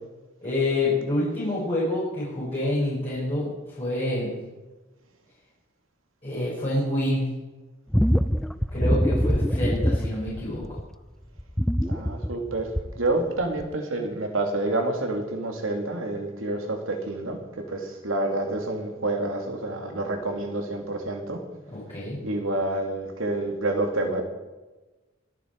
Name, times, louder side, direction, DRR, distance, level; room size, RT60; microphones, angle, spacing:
voice 1, 0.4-4.4 6.2-7.3 8.7-10.8 21.7-22.2, left 1 dB, 30° left, -8 dB, 6.1 m, -27 dB
sound 1, 7.9-10.9 11.4-13.1 13.6-13.7, equal, ahead, 0.4 m, -24 dB
voice 2, 11.8-12.7 13.0-21.4 22.2-24.2, right 2 dB, 75° right, 3 dB, 2.8 m, -28 dB
24.0 x 9.2 x 4.8 m, 1.2 s
head